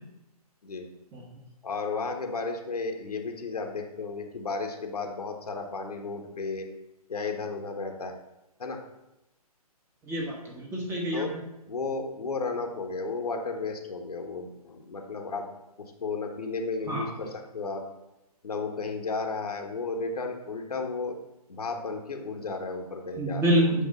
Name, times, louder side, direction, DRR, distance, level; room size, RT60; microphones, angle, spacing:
voice 1, 1.6-6.7 7.1-8.1 8.6-8.8 11.1-11.3 11.7-15.4 16.0-17.8 18.4-21.2 21.5-23.7, left 4 dB, 75° left, 3 dB, 1.3 m, -33 dB
voice 2, 10.1-11.2 16.9-17.1 23.2-23.9, right 1 dB, 10° right, -2 dB, 1.3 m, -27 dB
8.6 x 3.3 x 5.3 m, 0.92 s
figure-of-eight pair, 135°, 20 cm